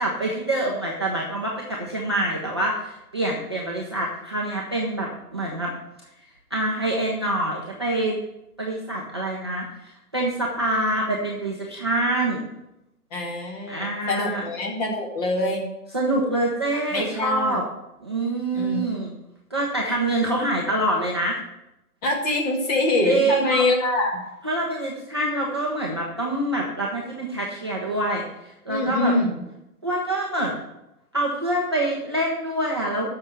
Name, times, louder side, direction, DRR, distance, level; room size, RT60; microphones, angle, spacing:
voice 1, 0.0-5.7 6.5-8.2 8.6-12.4 13.7-14.4 15.9-17.6 18.0-19.1 19.5-21.4 23.0-23.6 24.4-28.2 28.7-29.1 29.8-30.6 31.1-33.1, right 1 dB, 20° right, -4 dB, 0.5 m, -25 dB
voice 2, 13.1-15.7 16.9-17.6 18.5-18.8 22.0-24.2 28.7-29.4, left 2 dB, 25° left, 0 dB, 2.1 m, -24 dB
8.0 x 6.7 x 7.5 m, 0.88 s
hypercardioid pair, 155°, 46 cm